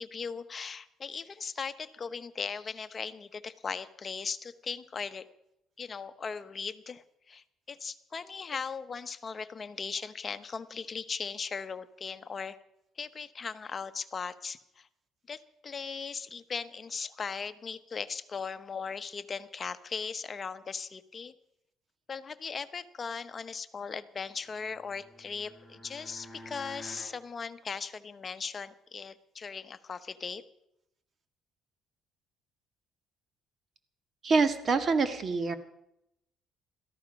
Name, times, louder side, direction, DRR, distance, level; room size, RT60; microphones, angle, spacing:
voice 1, 0.0-5.3 5.8-12.6 13.0-14.9 15.3-21.3 22.1-30.4, left 5 dB, 35° left, 11 dB, 0.9 m, -38 dB
sound 1, 24.6-27.2, left 1 dB, 15° left, 7.8 m, -49 dB
voice 2, 34.2-35.6, right 4 dB, 40° right, 9 dB, 1.7 m, -26 dB
17.5 x 13.5 x 5.3 m, 0.82 s
cardioid pair, 105°, 0 cm